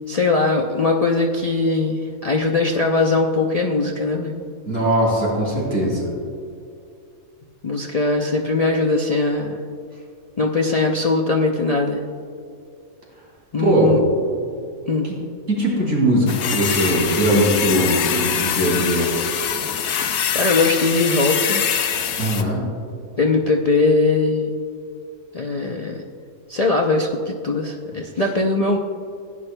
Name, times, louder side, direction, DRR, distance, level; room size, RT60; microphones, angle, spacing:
voice 1, 0.1-4.4 7.6-9.6 10.4-12.0 13.5-14.0 14.9-15.1 20.3-21.6 23.2-24.6 25.3-26.0 26.5-28.8, left 3 dB, 55° left, 0 dB, 0.4 m, -20 dB
voice 2, 4.7-6.1 13.6-14.2 15.5-19.1 22.2-22.6, right 1 dB, 60° right, -4 dB, 3.1 m, -20 dB
sound 1, 16.3-22.4, left 8 dB, 85° left, 1.1 m, -23 dB
15.5 x 9.7 x 2.2 m, 2.5 s
omnidirectional pair, 1.5 m